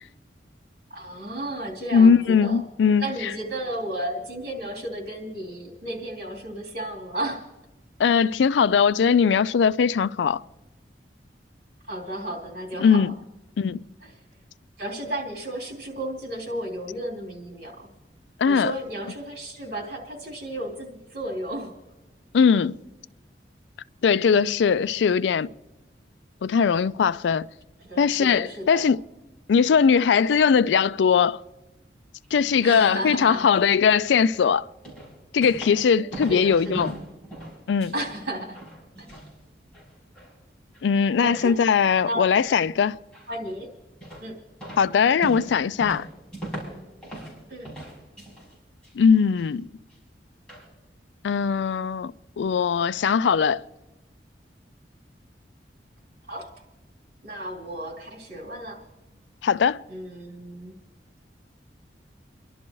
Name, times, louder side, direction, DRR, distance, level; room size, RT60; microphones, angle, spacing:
voice 1, 0.9-2.6 3.0-7.4 11.9-13.1 14.0-14.1 14.8-17.9 18.4-21.7 27.8-28.8 32.6-33.5 35.9-36.9 37.9-38.6 39.0-39.1 41.2-41.6 42.0-42.2 43.3-43.7 44.2-44.3 47.5-47.7 56.3-56.5 57.2-58.8 59.9-60.7, right 1 dB, 60° right, 3.2 m, -33 dB
voice 2, 1.9-3.0 8.0-10.4 12.8-13.1 13.6-13.9 18.4-18.7 22.3-22.8 24.0-25.5 26.4-27.5 28.0-29.0 29.5-31.4 32.3-34.7 35.3-36.9 37.7-37.9 40.8-43.0 44.8-46.1 48.9-49.7 51.2-53.6 59.4-59.8, left 6 dB, 85° left, 0.4 m, -20 dB
sound 1, 32.2-32.7 34.0-34.3 34.8-35.9 36.1-38.2 38.5-39.3 39.7-40.3 40.7-40.8 41.3-41.5 42.5-42.6 43.1-43.5 44.0-44.4 44.6-47.4 47.6-48.5 48.8-49.5 49.9-50.0 50.5-50.7, right 1 dB, 5° left, 5.2 m, -39 dB
29.5 x 11.5 x 3.1 m
head